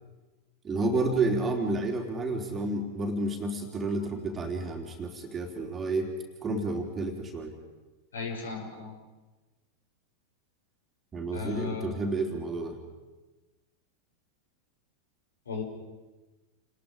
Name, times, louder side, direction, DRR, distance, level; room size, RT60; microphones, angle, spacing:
voice 1, 0.6-6.1 6.4-7.5 11.1-12.7, right 2 dB, 20° right, 2 dB, 3.4 m, -30 dB
voice 2, 8.1-9.0 11.3-11.9 15.4-15.6, left 5 dB, 70° left, 2 dB, 5.1 m, -35 dB
30.0 x 20.0 x 5.1 m, 1.2 s
figure-of-eight pair, 90°, 0 cm